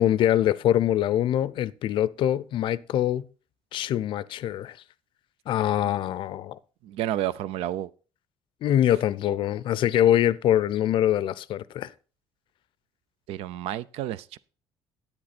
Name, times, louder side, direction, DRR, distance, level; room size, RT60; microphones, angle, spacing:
voice 1, 0.0-3.2 3.7-4.8 5.5-6.6 8.6-11.9, left 11 dB, 55° left, 0.5 m, -24 dB
voice 2, 6.8-7.9 13.3-14.4, right 12 dB, 85° right, 0.5 m, -30 dB
10.5 x 8.6 x 4.2 m
cardioid pair, 150°, 10 cm